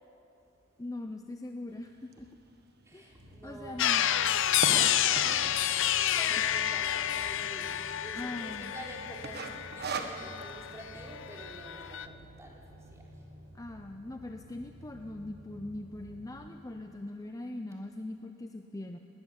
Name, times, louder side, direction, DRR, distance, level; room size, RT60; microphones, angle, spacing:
voice 1, 0.8-2.3 2.9-3.1 3.4-4.0 8.1-8.7 13.5-19.0, left 1 dB, 15° left, 5 dB, 0.6 m, -41 dB
sound 1, 2.1-2.2 2.8-2.9 3.1-3.2 3.4-5.6 6.2-6.6 7.0-7.1 7.3-7.4 7.9-8.3 8.6-8.8 9.2-10.5, right 4 dB, 50° right, 1.2 m, -37 dB
voice 2, 2.8-4.1 5.0-13.3, right 1 dB, 15° right, -2 dB, 3.5 m, -48 dB
sound 2, 3.1-16.5, equal, 90° right, 3.0 m, -52 dB
sound 3, 3.8-11.0 11.2-12.1, left 11 dB, 65° left, 0.6 m, -29 dB
19.5 x 19.5 x 7.3 m, 2.8 s
head